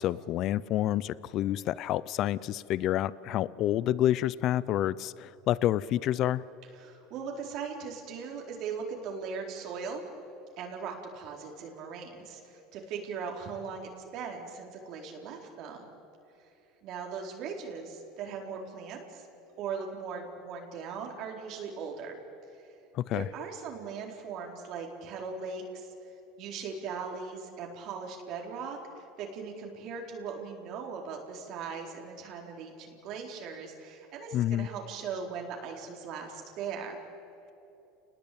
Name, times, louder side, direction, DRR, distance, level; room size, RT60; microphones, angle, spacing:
voice 1, 0.0-6.4 22.9-23.3 34.3-34.7, left 13 dB, 50° left, 20 dB, 0.6 m, -28 dB
voice 2, 6.8-10.0 10.6-15.9 16.8-19.3 19.6-22.2 22.5-22.7 23.1-25.9 26.4-37.0, right 5 dB, 55° right, 1 dB, 4.4 m, -39 dB
29.0 x 20.0 x 8.7 m, 2.9 s
supercardioid pair, 110°, 0 cm